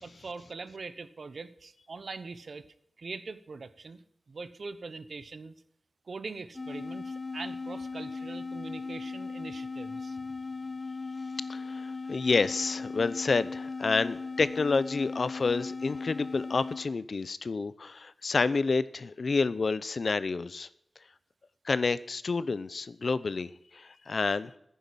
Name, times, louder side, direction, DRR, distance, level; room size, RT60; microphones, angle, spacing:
voice 1, 0.0-2.7 3.0-5.5 6.1-10.2, right 4 dB, 75° right, 13 dB, 1.0 m, -42 dB
sound 1, 6.5-16.9, left 4 dB, 40° left, 1.0 m, -38 dB
voice 2, 11.5-20.7 21.7-24.5, left 4 dB, 70° left, 16 dB, 0.7 m, -29 dB
10.5 x 9.4 x 8.5 m, 0.78 s
wide cardioid pair, 65°, 0 cm